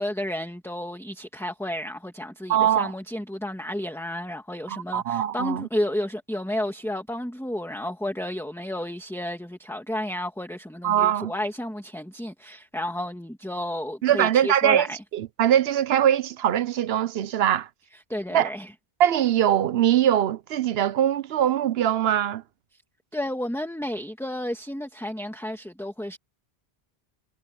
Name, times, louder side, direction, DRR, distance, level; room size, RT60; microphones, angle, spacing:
voice 1, 0.0-15.0 17.9-18.7 23.1-26.2, left 1 dB, ahead, 2.0 m, -32 dB
voice 2, 2.5-2.9 4.7-5.7 10.8-11.3 14.0-14.9 15.1-17.7 18.3-18.5 19.0-22.4, right 10 dB, 75° right, 0.9 m, -22 dB
omnidirectional pair, 1.1 m